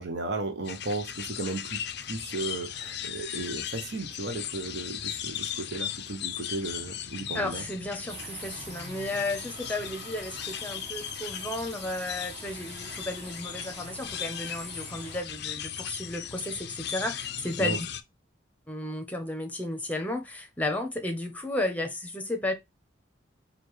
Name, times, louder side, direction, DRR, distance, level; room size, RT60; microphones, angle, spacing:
voice 1, 0.0-7.6 17.6-17.8, right 2 dB, 55° right, 0.8 m, -35 dB
sound 1, 0.7-18.0, left 10 dB, 55° left, 0.4 m, -37 dB
voice 2, 7.3-17.9 18.7-22.5, left 1 dB, 10° left, 0.8 m, -33 dB
sound 2, 8.1-15.2, right 3 dB, 30° right, 0.9 m, -45 dB
4.9 x 2.4 x 3.2 m
head